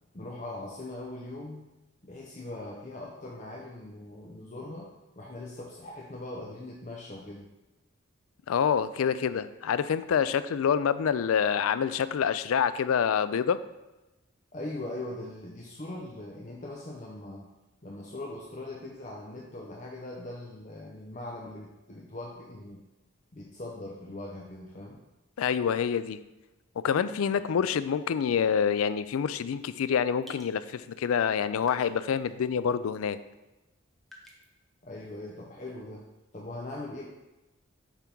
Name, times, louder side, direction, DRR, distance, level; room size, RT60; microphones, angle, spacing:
voice 1, 0.1-1.7 2.0-4.9 5.2-7.5 14.5-17.5 17.8-22.8 23.3-25.0 34.8-36.0 36.3-37.1, left 2 dB, 35° left, -2 dB, 0.7 m, -41 dB
voice 2, 8.5-13.6 25.4-26.2 26.8-33.2, left 7 dB, 80° left, 14 dB, 0.4 m, -27 dB
sound 1, 29.6-29.8 30.2-30.5 31.2-31.3 31.6-32.4 32.7-32.8 34.1-34.5, left 1 dB, ahead, 0.8 m, -50 dB
7.3 x 3.6 x 5.3 m, 1.0 s
head